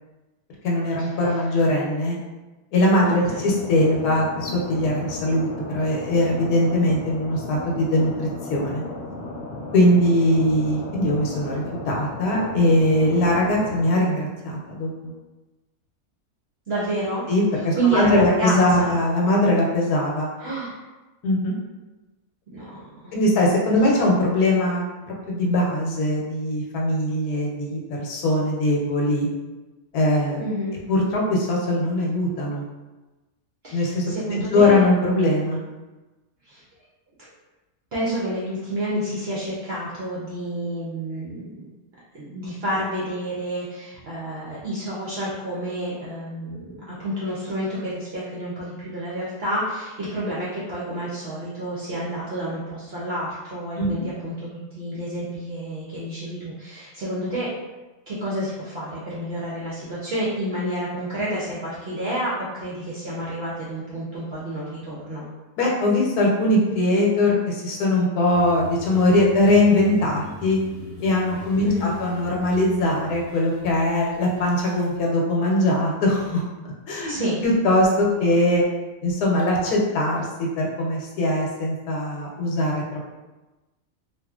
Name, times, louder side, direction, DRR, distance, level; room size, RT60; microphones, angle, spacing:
voice 1, 0.6-2.2 2.7-8.8 9.7-15.1 17.3-20.3 21.2-21.5 23.1-29.3 29.9-30.4 30.9-32.6 33.7-35.7 53.8-54.0 65.6-70.6 71.0-76.4 76.9-78.6 79.0-83.1, left 1 dB, 80° left, -2 dB, 1.2 m, -21 dB
sound 1, 3.3-13.8, left 2 dB, 65° left, 0.6 m, -35 dB
voice 2, 16.7-17.2 17.7-19.0 20.4-20.8 22.5-23.1 30.4-30.8 33.6-34.8 36.4-36.6 37.9-41.4 42.1-57.5 58.1-65.2 71.6-71.9 77.1-77.4, right 1 dB, 60° right, -8 dB, 0.6 m, -29 dB
sound 2, 68.3-75.0, left 3 dB, 35° left, 0.9 m, -41 dB
2.9 x 2.4 x 2.3 m, 1.1 s
omnidirectional pair, 1.6 m